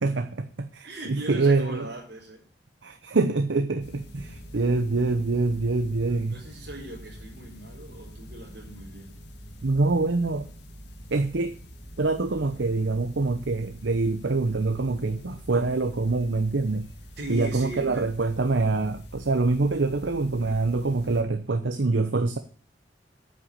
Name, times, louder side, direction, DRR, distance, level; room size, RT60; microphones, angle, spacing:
voice 1, 0.0-1.9 2.8-6.3 9.6-10.5 11.1-11.5 12.0-16.9 17.3-22.4, right 3 dB, 80° right, 0.8 m, -25 dB
voice 2, 0.8-2.4 6.1-9.2 17.2-18.1, right 1 dB, 65° right, 4.0 m, -39 dB
sound 1, 3.8-21.2, equal, 70° left, 1.9 m, -45 dB
9.1 x 6.1 x 8.2 m
head